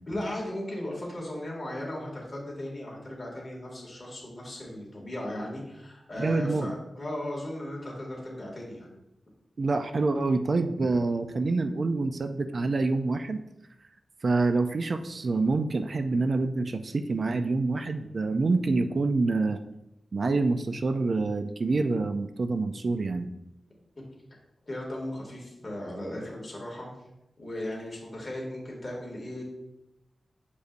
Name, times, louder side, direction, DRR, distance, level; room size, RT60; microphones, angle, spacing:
voice 1, 0.1-8.9 24.7-26.9 27.4-29.4, left 1 dB, 30° left, -3 dB, 2.1 m, -36 dB
voice 2, 6.2-6.7 9.6-13.4 14.2-19.6 20.1-23.3, right 3 dB, 50° right, 8 dB, 0.4 m, -26 dB
8.0 x 5.1 x 2.5 m, 0.88 s
wide cardioid pair, 105°, 0 cm